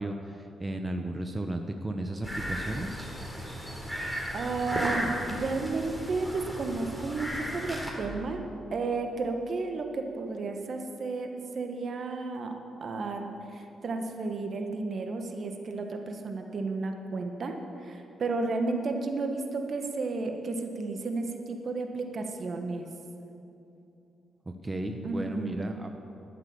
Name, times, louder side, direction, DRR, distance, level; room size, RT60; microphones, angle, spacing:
voice 1, 0.0-3.0 24.5-25.9, right 1 dB, 25° right, 5 dB, 1.1 m, -34 dB
sound 1, 2.2-7.9, equal, ahead, 3.9 m, -35 dB
voice 2, 4.3-8.4 8.7-12.5 12.8-17.6 17.8-22.9 25.0-25.7, right 3 dB, 55° right, 4 dB, 1.5 m, -32 dB
11.5 x 11.5 x 7.2 m, 2.8 s
hypercardioid pair, 45°, 0 cm